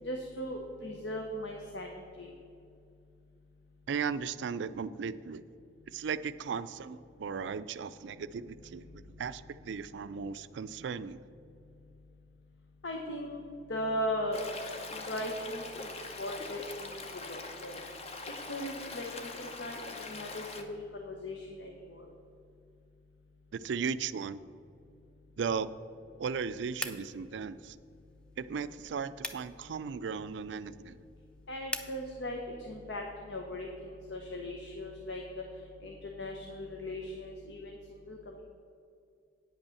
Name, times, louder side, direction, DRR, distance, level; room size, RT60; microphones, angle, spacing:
voice 1, 0.0-2.3 12.8-13.4 13.7-14.4 14.9-15.9 16.2-17.8 18.5-19.1 19.4-22.1 31.5-35.4 35.8-37.7 38.1-38.4, left 1 dB, 70° left, 2 dB, 0.9 m, -38 dB
voice 2, 3.9-5.4 5.9-11.2 23.5-24.4 25.4-25.7 26.2-27.8 28.4-31.0, right 6 dB, 70° right, 15 dB, 0.4 m, -36 dB
Stream, 14.3-20.6, left 3 dB, 35° left, 0.8 m, -43 dB
sound 1, 26.8-32.0, left 1 dB, 5° left, 0.5 m, -45 dB
9.2 x 5.4 x 7.0 m, 2.4 s
head